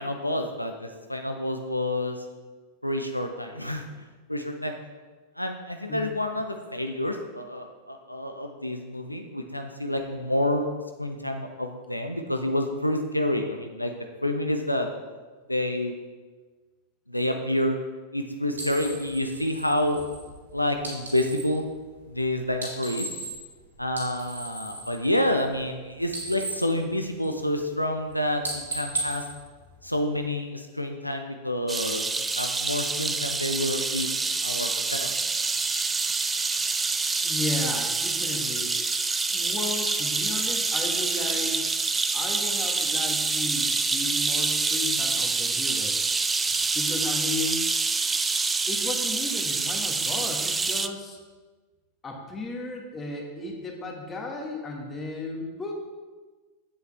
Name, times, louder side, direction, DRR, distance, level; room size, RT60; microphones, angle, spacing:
voice 1, 0.0-2.3 2.8-3.8 4.3-4.8 5.4-10.7 11.0-13.9 14.2-14.9 15.5-15.9 17.1-17.8 18.1-20.1 20.5-21.7 22.1-23.1 23.8-29.2 29.8-34.1 34.4-35.2, left 1 dB, 90° left, 5 dB, 0.6 m, -28 dB
sound 1, 18.5-21.6 22.5-23.6 23.9-25.7 26.0-27.6 27.9-28.1 28.4-30.2, right 2 dB, 75° right, 2.3 m, -36 dB
sound 2, 31.7-50.9, right 4 dB, 15° right, 0.4 m, -26 dB
voice 2, 37.2-38.8 39.3-41.6 42.1-46.1 46.7-47.6 48.7-51.2 52.0-55.7, left 3 dB, 20° left, 1 dB, 1.6 m, -34 dB
8.1 x 7.9 x 3.5 m, 1.3 s
figure-of-eight pair, 90°, 0 cm